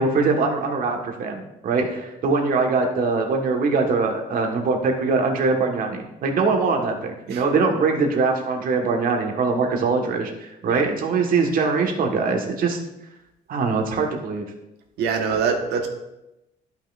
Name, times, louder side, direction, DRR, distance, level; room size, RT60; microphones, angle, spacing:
voice 1, 0.0-12.8 13.5-14.5, right 4 dB, 55° right, 3 dB, 1.4 m, -22 dB
voice 2, 15.0-15.9, right 5 dB, 80° right, 4 dB, 1.2 m, -24 dB
11.5 x 5.9 x 2.5 m, 0.91 s
cardioid pair, 110°, 17 cm